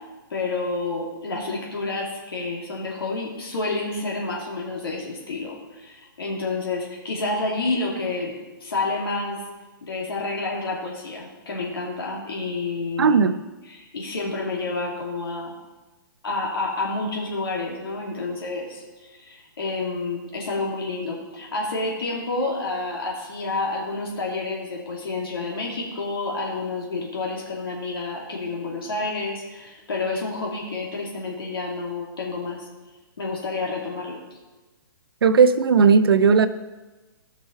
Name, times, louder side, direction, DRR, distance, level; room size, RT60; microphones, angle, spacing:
voice 1, 0.3-9.4 9.8-13.2 13.7-15.6 16.2-32.6 33.2-34.2, left 3 dB, 85° left, -2 dB, 2.8 m, -29 dB
voice 2, 13.0-13.4 35.2-36.5, right 5 dB, 85° right, 12 dB, 0.7 m, -16 dB
16.0 x 6.1 x 4.6 m, 1.2 s
hypercardioid pair, 175°, 12 cm